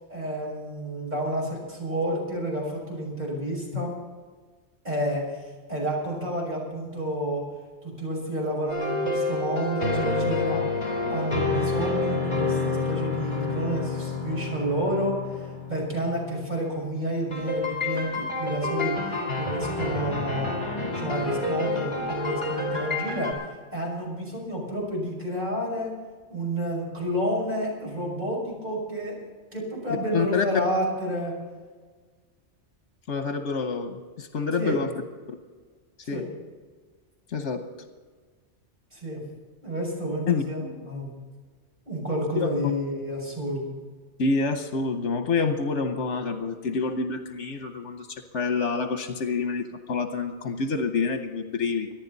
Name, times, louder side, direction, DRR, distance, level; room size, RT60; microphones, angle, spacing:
voice 1, 0.1-3.9 4.8-5.4 5.7-7.4 7.8-10.6 11.1-20.6 20.9-23.3 23.7-25.9 26.3-29.2 29.5-31.3 34.6-34.8 36.0-36.2 38.9-39.2 39.6-41.1 41.9-43.7, right 1 dB, 40° right, -3 dB, 6.3 m, -30 dB
sound 1, 8.7-16.5 17.3-23.3, left 3 dB, 45° left, 4.2 m, -29 dB
voice 2, 30.1-30.4 33.1-34.9 36.1-36.2 37.3-37.6 40.3-40.4 42.4-42.5 44.2-51.9, left 4 dB, 75° left, 6 dB, 1.3 m, -27 dB
25.0 x 10.5 x 4.1 m, 1.5 s
omnidirectional pair, 1.2 m